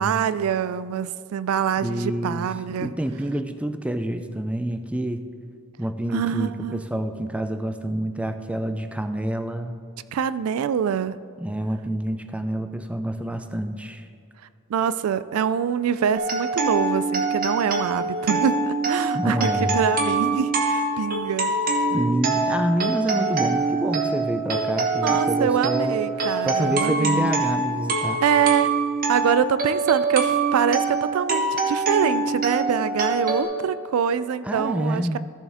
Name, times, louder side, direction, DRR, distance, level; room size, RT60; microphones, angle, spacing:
voice 1, 0.0-2.9 6.1-7.0 10.1-11.2 14.7-21.5 25.0-27.3 28.2-28.7 29.1-35.2, right 8 dB, 85° right, 15 dB, 0.3 m, -25 dB
voice 2, 1.8-2.5 2.7-5.3 5.8-9.8 11.4-14.1 19.1-19.8 21.9-26.0 26.4-28.2 34.4-35.2, right 1 dB, 5° right, 8 dB, 0.4 m, -27 dB
sound 1, 16.1-33.4, right 3 dB, 45° right, 1.0 m, -24 dB
14.0 x 6.9 x 3.5 m, 2.3 s
head